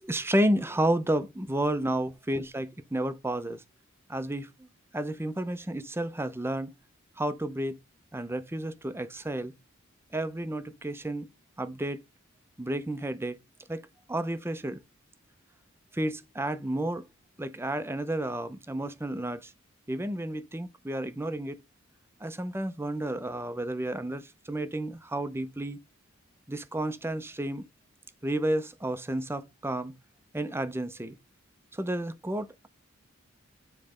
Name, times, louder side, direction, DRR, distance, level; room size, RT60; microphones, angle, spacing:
voice 1, 0.0-3.6 4.1-4.5 4.9-6.7 7.2-7.8 8.1-9.5 10.1-11.3 11.6-12.0 12.6-13.4 13.7-13.8 14.1-14.8 15.9-17.1 17.4-19.5 19.9-21.6 22.2-25.8 26.5-27.6 28.2-29.9 30.3-31.2 31.7-32.7, right 1 dB, 10° right, 0.7 m, -31 dB
9.5 x 3.3 x 5.0 m
head